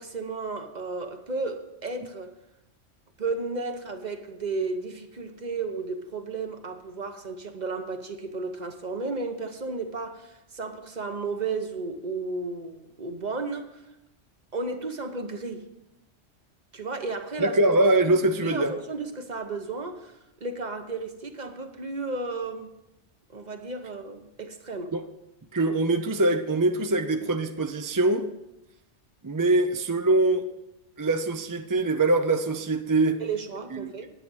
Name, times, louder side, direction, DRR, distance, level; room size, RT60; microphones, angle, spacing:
voice 1, 0.0-2.3 3.2-13.8 14.5-15.7 16.7-17.6 18.0-18.2 18.4-20.1 20.4-22.7 23.3-24.9 33.2-34.1, right 3 dB, 40° right, 1.0 m, -33 dB
voice 2, 17.4-18.7 24.9-25.0 25.5-28.3 29.2-30.5 31.0-33.2 33.8-33.9, right 2 dB, 25° right, 0.5 m, -23 dB
10.0 x 8.5 x 6.3 m
omnidirectional pair, 1.2 m